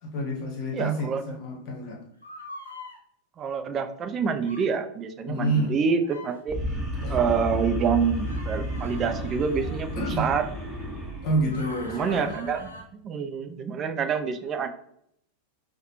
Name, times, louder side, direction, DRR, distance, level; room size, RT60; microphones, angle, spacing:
voice 1, 0.0-2.0 5.3-5.8 7.0-7.2 9.9-10.3 11.2-12.3, right 1 dB, 40° left, 1 dB, 1.0 m, -28 dB
voice 2, 0.7-1.2 3.4-6.6 7.1-10.5 11.9-12.7 13.0-14.7, right 6 dB, 25° right, 9 dB, 0.4 m, -27 dB
sound 1, 2.2-3.0 4.4-4.7 6.0-6.4 8.2-10.1 11.4-12.8, left 2 dB, 80° left, 0.6 m, -44 dB
sound 2, 6.5-12.8, right 1 dB, 5° right, 1.4 m, -33 dB
4.8 x 2.2 x 3.0 m, 0.72 s
figure-of-eight pair, 90°, 0 cm